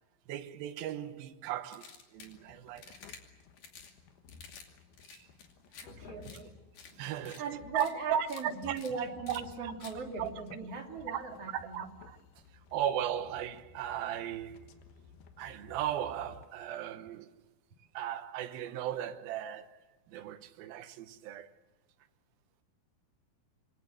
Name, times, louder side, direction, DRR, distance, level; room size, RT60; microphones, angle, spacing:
voice 1, 0.3-3.0 5.1-5.3 7.0-7.4 7.7-8.8 9.3-9.7 10.2-10.3 11.5-12.2 12.7-14.7 15.4-17.3 17.9-19.8 20.1-21.5, right 10 dB, 75° right, 2.8 m, -36 dB
sound 1, 1.7-2.4 2.8-3.2 3.6-3.9 4.3-4.7 4.9-5.9 6.2-6.4 6.8-6.9 7.3-7.4 7.8-7.9 8.2-8.4 8.8-8.9 9.3-9.4 9.8-9.9, left 6 dB, 60° left, 4.1 m, -51 dB
sound 2, 2.2-16.5, left 5 dB, 80° left, 3.3 m, -56 dB
voice 2, 5.8-6.5 6.9-7.1 7.4-11.9, right 5 dB, 45° right, 3.4 m, -39 dB
27.0 x 22.5 x 7.6 m
omnidirectional pair, 4.4 m